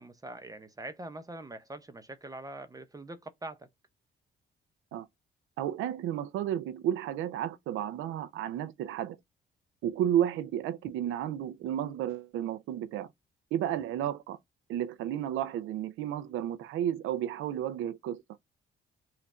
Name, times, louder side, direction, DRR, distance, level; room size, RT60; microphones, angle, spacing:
voice 1, 0.0-3.7, right 2 dB, 20° right, 0.6 m, -43 dB
voice 2, 5.6-9.2 9.8-13.1 13.5-14.4 14.7-18.2, right 11 dB, 85° right, 0.5 m, -32 dB
3.1 x 2.4 x 4.2 m
cardioid pair, 90°, 20 cm